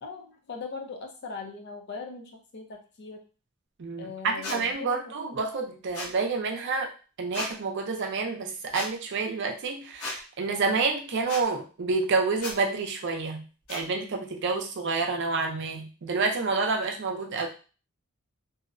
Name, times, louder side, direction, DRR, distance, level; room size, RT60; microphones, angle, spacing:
voice 1, 0.0-3.2 4.0-5.0, left 4 dB, 50° left, 3 dB, 0.5 m, -40 dB
voice 2, 3.8-6.9 7.2-13.4 13.7-17.5, right 4 dB, 55° right, 3 dB, 0.4 m, -28 dB
sound 1, 4.4-4.6 5.9-6.1 7.3-7.5 8.7-8.9 10.0-10.2 11.3-11.4 12.4-12.5 13.7-13.8, left 2 dB, 75° left, 0.8 m, -34 dB
2.6 x 2.0 x 2.4 m, 0.35 s
head